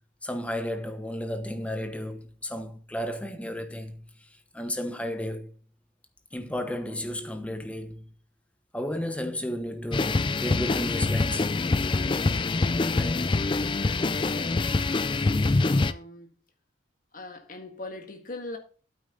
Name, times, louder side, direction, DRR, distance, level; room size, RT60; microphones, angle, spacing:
voice 1, 0.2-4.0 4.5-5.5 6.3-8.1 8.7-11.6 12.9-13.3, left 1 dB, 5° left, 0.9 m, -33 dB
sound 1, 9.9-15.9, left 3 dB, 25° left, 0.4 m, -25 dB
voice 2, 14.2-15.2 15.7-16.3 17.1-18.6, left 2 dB, 45° left, 1.7 m, -41 dB
9.0 x 8.6 x 3.9 m
head